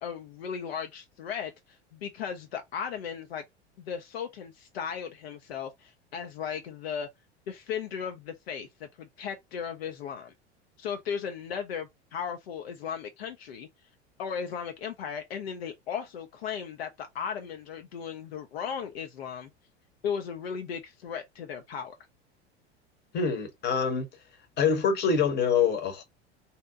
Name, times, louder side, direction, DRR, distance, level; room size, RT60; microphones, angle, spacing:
voice 1, 0.0-3.4 3.8-7.1 7.5-10.3 10.8-13.7 14.2-19.5 20.0-22.0, left 7 dB, 65° left, 0.6 m, -36 dB
voice 2, 23.1-24.1 24.6-26.0, left 6 dB, 30° left, 0.9 m, -25 dB
2.8 x 2.1 x 3.4 m
figure-of-eight pair, 80°, 33 cm